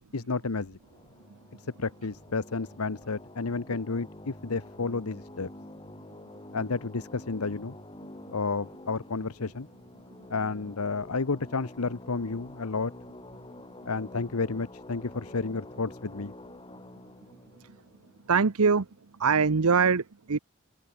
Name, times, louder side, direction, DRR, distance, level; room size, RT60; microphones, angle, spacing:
voice 1, 0.1-0.8 1.8-5.5 6.5-7.7 8.3-9.7 10.3-12.9 13.9-16.3, left 4 dB, 85° left, 1.0 m, -31 dB
sound 1, 0.8-18.9, left 1 dB, 25° left, 5.6 m, -48 dB
voice 2, 18.3-18.8 19.2-20.4, right 5 dB, 85° right, 0.8 m, -23 dB
open air
head